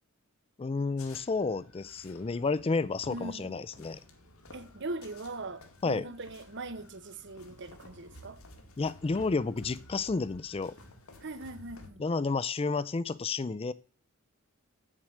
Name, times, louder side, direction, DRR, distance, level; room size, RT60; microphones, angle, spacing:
voice 1, 0.6-4.0 5.8-6.1 8.8-10.8 12.0-13.7, left 4 dB, 25° left, 0.4 m, -31 dB
sound 1, 1.0-11.9, left 2 dB, 75° left, 2.2 m, -53 dB
voice 2, 3.1-3.5 4.5-8.4 11.2-12.0, right 2 dB, 55° right, 1.0 m, -41 dB
8.5 x 7.5 x 6.3 m
head